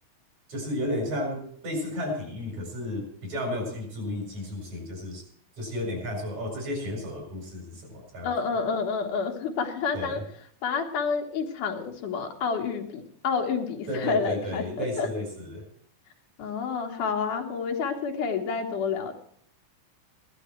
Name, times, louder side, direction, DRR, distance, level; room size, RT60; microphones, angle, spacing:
voice 1, 0.5-5.2 5.6-8.3 9.9-10.2 13.9-15.6, left 1 dB, 65° right, 1 dB, 6.2 m, -32 dB
voice 2, 8.2-10.2 10.6-15.1 16.4-19.1, left 5 dB, 90° left, 3 dB, 3.1 m, -29 dB
16.0 x 11.5 x 4.5 m, 0.62 s
omnidirectional pair, 3.5 m